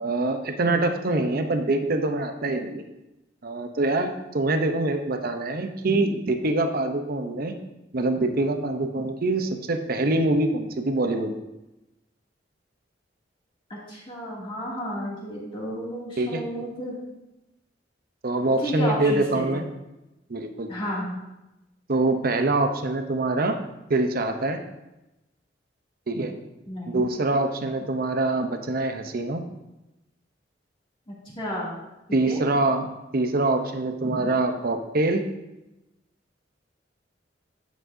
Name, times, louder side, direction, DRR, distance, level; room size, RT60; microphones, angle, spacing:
voice 1, 0.0-2.8 3.4-7.5 7.9-11.4 16.2-16.4 18.2-19.6 20.3-20.7 21.9-23.6 23.9-24.6 26.1-26.3 26.9-29.4 32.1-32.9 33.1-35.2, right 2 dB, 55° right, 6 dB, 0.7 m, -24 dB
voice 2, 13.9-17.0 18.6-19.6 20.7-21.2 26.7-27.1 31.1-31.8 32.1-32.4, equal, 30° left, -6 dB, 2.4 m, -32 dB
10.0 x 7.2 x 2.7 m, 0.96 s
head